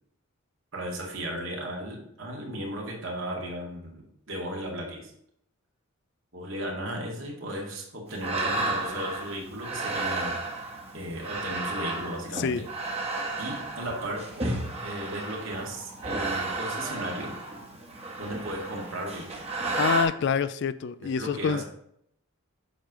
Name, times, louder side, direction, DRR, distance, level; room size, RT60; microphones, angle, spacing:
voice 1, 0.7-4.0 4.3-5.1 6.3-10.4 10.9-12.6 13.4-17.3 18.2-19.5 21.0-21.6, right 1 dB, 60° right, 2.1 m, -35 dB
sound 1, 8.1-20.0, right 2 dB, 30° right, 1.4 m, -33 dB
voice 2, 19.8-21.6, left 6 dB, 50° left, 0.3 m, -26 dB
8.0 x 3.3 x 6.0 m
head